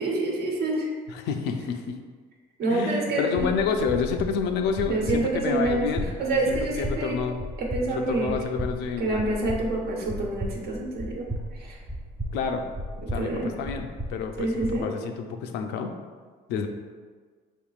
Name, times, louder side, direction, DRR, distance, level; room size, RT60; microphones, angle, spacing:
voice 1, 0.0-0.9 2.6-3.5 4.9-5.9 6.2-7.2 7.6-8.3 9.0-11.3 11.5-11.8 13.0-13.5 14.4-14.9, right 2 dB, 70° right, -2 dB, 1.1 m, -27 dB
voice 2, 1.1-2.0 2.7-7.4 7.9-9.2 12.3-12.6 13.0-15.9 16.5-16.7, left 6 dB, 85° left, 6 dB, 0.5 m, -29 dB
sound 1, 3.4-14.8, right 1 dB, 10° right, 0.4 m, -35 dB
5.2 x 3.5 x 2.4 m, 1.5 s
cardioid pair, 110°, 17 cm